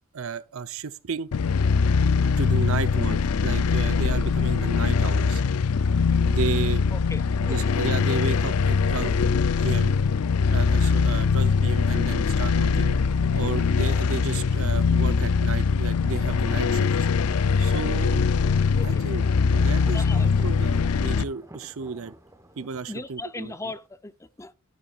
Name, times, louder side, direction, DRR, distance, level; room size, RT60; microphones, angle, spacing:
voice 1, 0.1-1.3 2.4-5.4 6.2-6.8 7.4-9.2 9.6-9.9 10.5-13.0 13.3-16.9 17.6-18.3 18.8-19.2 19.5-22.1 22.6-23.7, right 5 dB, 65° right, 0.7 m, -33 dB
sound 1, 1.3-21.2, left 5 dB, 90° left, 0.5 m, -22 dB
voice 2, 6.9-7.6 18.8-19.0 19.8-20.3 22.6-24.5, left 2 dB, 15° left, 0.6 m, -38 dB
Thunder, 17.5-23.9, right 1 dB, 15° right, 1.1 m, -49 dB
12.0 x 11.0 x 2.4 m
head